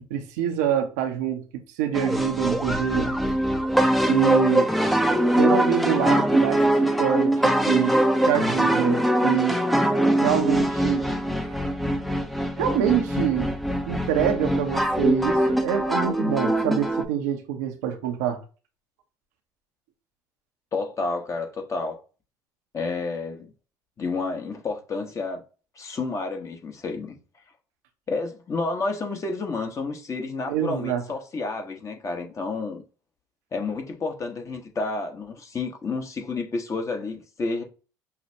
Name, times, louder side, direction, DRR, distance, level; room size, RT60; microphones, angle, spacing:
voice 1, 0.1-1.5 1.8-3.1 4.1-4.7 5.4-7.9 8.2-9.7 10.2-11.1 11.4-11.6 12.6-13.5 13.8-18.4 30.5-31.0, right 10 dB, 85° right, 0.7 m, -26 dB
sound 1, 1.9-17.0, right 1 dB, ahead, 0.5 m, -22 dB
voice 2, 20.7-22.0 22.7-23.5 24.0-25.4 25.8-27.2 28.1-32.8 33.5-37.6, left 3 dB, 35° left, 1.1 m, -30 dB
5.5 x 2.1 x 2.8 m
supercardioid pair, 75°, 9 cm